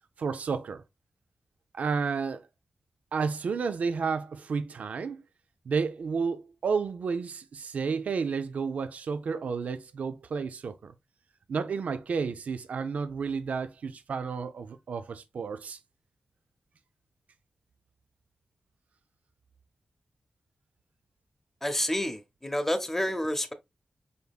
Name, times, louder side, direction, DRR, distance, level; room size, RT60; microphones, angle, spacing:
voice 1, 0.2-0.8 1.7-2.5 3.1-5.2 5.7-10.9 11.5-15.8, right 5 dB, 75° right, 0.4 m, -31 dB
voice 2, 21.6-23.5, left 1 dB, 10° left, 0.7 m, -29 dB
5.2 x 3.4 x 2.3 m
wide cardioid pair, 75°, 2 cm